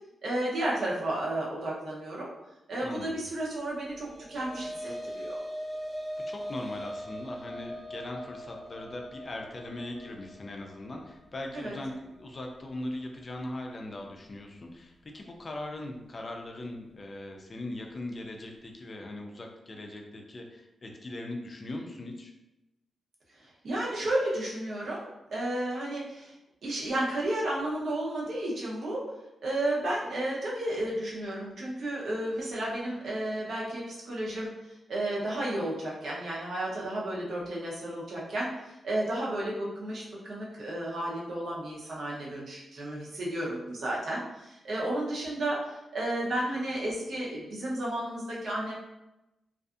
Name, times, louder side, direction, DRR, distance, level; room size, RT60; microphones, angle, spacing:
voice 1, 0.2-2.3 2.7-5.4 11.5-11.7 23.4-26.3 26.6-29.0 29.4-34.5 34.9-48.7, right 1 dB, 60° right, -4 dB, 0.7 m, -32 dB
voice 2, 2.8-3.2 6.3-22.3, left 1 dB, 35° left, 2 dB, 0.4 m, -40 dB
sound 1, 3.9-12.4, equal, 10° left, 1.0 m, -41 dB
2.5 x 2.4 x 2.4 m, 0.95 s
wide cardioid pair, 140°, 0 cm